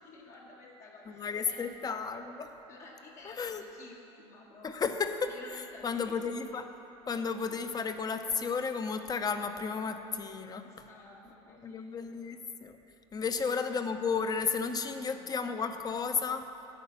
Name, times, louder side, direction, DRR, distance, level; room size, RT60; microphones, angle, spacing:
voice 1, 0.0-1.7 2.7-6.3 7.5-7.6 10.6-12.3 13.2-13.7 14.9-15.3, left 3 dB, 65° left, -4 dB, 1.3 m, -53 dB
voice 2, 1.1-2.5 3.2-3.6 4.6-6.7 7.1-10.6 11.6-12.8 13.1-16.5, left 5 dB, 30° left, 8 dB, 0.7 m, -33 dB
11.0 x 4.9 x 7.0 m, 3.0 s
supercardioid pair, 90°, 14 cm